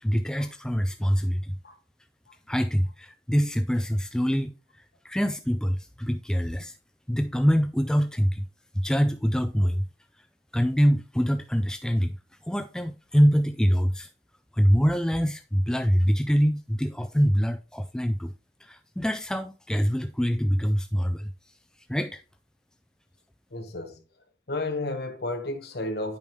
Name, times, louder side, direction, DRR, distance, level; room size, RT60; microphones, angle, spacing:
voice 1, 0.0-1.6 2.5-4.5 5.0-6.7 7.1-8.5 8.8-9.8 10.5-12.2 12.4-14.1 14.5-18.3 18.6-21.3 21.9-22.2, equal, 5° left, 0.3 m, -24 dB
voice 2, 23.5-24.0 24.5-26.2, left 2 dB, 60° left, 1.2 m, -32 dB
8.4 x 5.2 x 3.1 m
head